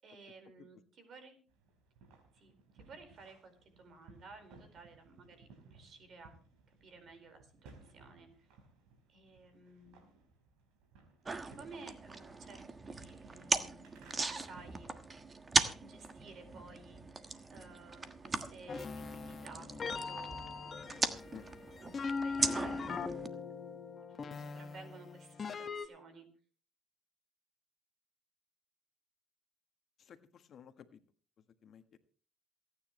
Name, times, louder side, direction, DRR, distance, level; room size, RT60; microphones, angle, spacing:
voice 1, 0.0-1.4 2.3-6.4 6.7-8.5 9.1-10.1 11.6-14.9 15.8-21.3 21.8-23.1 24.1-26.3, right 3 dB, 55° right, 7 dB, 4.6 m, -55 dB
sound 1, 1.5-14.6, right 4 dB, 85° right, 4.5 m, -61 dB
sound 2, 11.2-23.3, right 3 dB, 25° right, 1.4 m, -38 dB
sound 3, 18.7-25.9, left 5 dB, 40° left, 1.5 m, -41 dB
voice 2, 30.0-31.0 31.6-32.0, left 8 dB, 55° left, 8 dB, 1.4 m, -54 dB
27.5 x 9.8 x 3.1 m, 0.38 s
cardioid pair, 100°, 0 cm